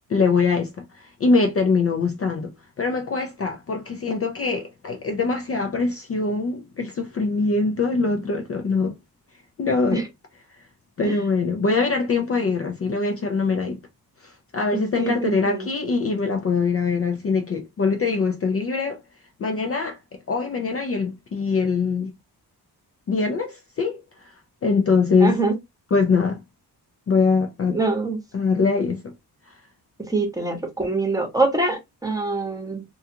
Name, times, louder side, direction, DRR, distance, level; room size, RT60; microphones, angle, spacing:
voice 1, 0.1-9.0 9.6-10.1 11.0-13.8 14.2-19.0 19.4-22.1 23.1-24.3 24.6-25.4 25.9-26.4 27.1-27.8 28.3-29.1 29.5-29.6, left 4 dB, 40° left, 0.4 m, -23 dB
voice 2, 15.0-15.7 25.2-25.5 27.7-28.2 30.1-32.8, right 3 dB, 10° right, 0.8 m, -24 dB
2.4 x 2.3 x 2.7 m
wide cardioid pair, 120°, 39 cm